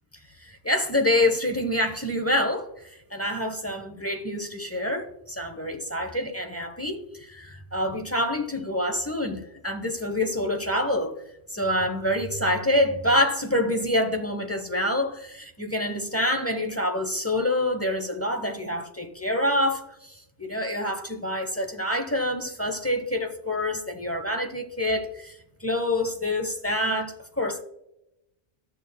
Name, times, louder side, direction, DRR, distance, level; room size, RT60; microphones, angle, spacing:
voice 1, 0.4-2.7 3.1-11.1 11.5-27.6, left 1 dB, 15° left, 0.7 m, -26 dB
14.0 x 6.7 x 2.2 m
omnidirectional pair, 1.2 m